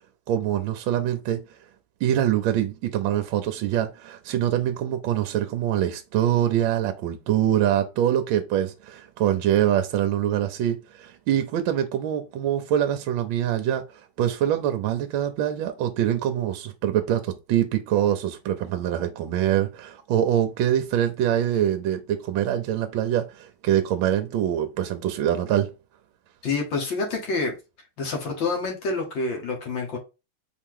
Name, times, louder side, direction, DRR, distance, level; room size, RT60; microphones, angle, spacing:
voice 1, 0.3-1.4 2.0-13.8 14.2-25.7, right 11 dB, 75° right, 1.3 m, -24 dB
voice 2, 26.4-27.6 28.0-30.0, left 3 dB, 65° left, 1.8 m, -27 dB
4.7 x 2.8 x 3.6 m
omnidirectional pair, 2.4 m